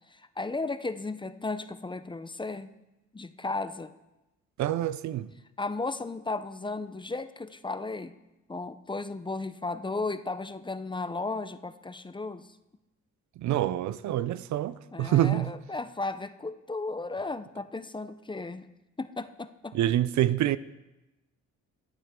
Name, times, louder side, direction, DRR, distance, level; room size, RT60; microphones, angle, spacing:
voice 1, 0.1-2.7 3.1-3.9 5.6-8.1 8.5-12.5 14.9-18.7 19.0-19.7, left 3 dB, 15° left, 0.6 m, -35 dB
voice 2, 4.6-5.3 13.4-15.5 19.7-20.6, right 13 dB, 70° right, 0.6 m, -26 dB
22.0 x 8.2 x 3.7 m
cardioid pair, 90°, 30 cm